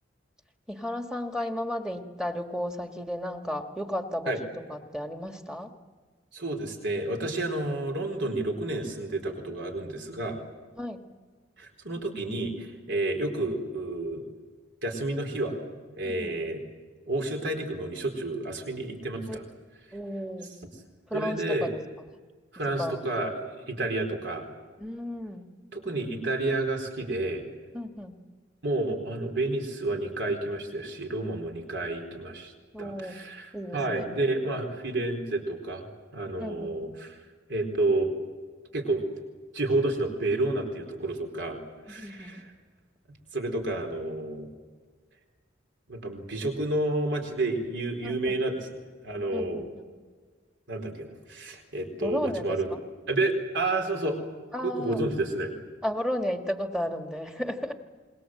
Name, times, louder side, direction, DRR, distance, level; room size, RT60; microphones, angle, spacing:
voice 1, 0.7-4.3 4.7-5.7 10.8-11.1 16.0-16.3 19.3-19.4 19.9-20.5 21.1-21.8 22.8-23.0 24.8-25.5 27.7-28.2 32.7-33.2 33.5-34.1 36.4-36.7 41.9-42.3 49.3-49.9 52.0-52.6 54.5-55.0 55.8-57.7, equal, 5° right, 4 dB, 1.6 m, -33 dB
voice 2, 6.3-10.4 11.6-14.3 14.8-15.6 15.9-16.6 17.1-19.4 20.6-20.7 21.1-21.7 22.5-24.5 25.7-27.4 28.6-32.5 32.8-35.8 36.1-37.2 37.5-38.1 38.7-39.1 39.5-41.6 41.9-42.5 43.1-44.5 45.9-48.7 49.0-49.7 50.7-52.7 53.1-54.3 54.6-55.5, right 2 dB, 65° right, 3 dB, 4.4 m, -30 dB
27.5 x 22.0 x 7.8 m, 1.5 s
head